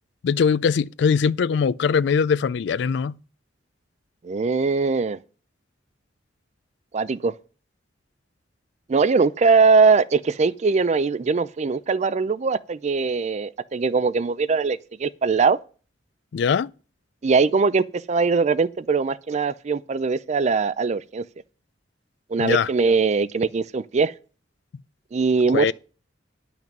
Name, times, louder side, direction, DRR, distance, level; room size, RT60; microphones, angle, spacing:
voice 1, 0.2-3.2 16.3-16.7 22.4-22.7 25.5-25.7, left 6 dB, 65° left, 0.3 m, -21 dB
voice 2, 4.2-5.2 6.9-7.3 8.9-15.6 17.2-21.2 22.3-24.1 25.1-25.7, right 4 dB, 40° right, 0.4 m, -21 dB
10.5 x 5.9 x 5.3 m
head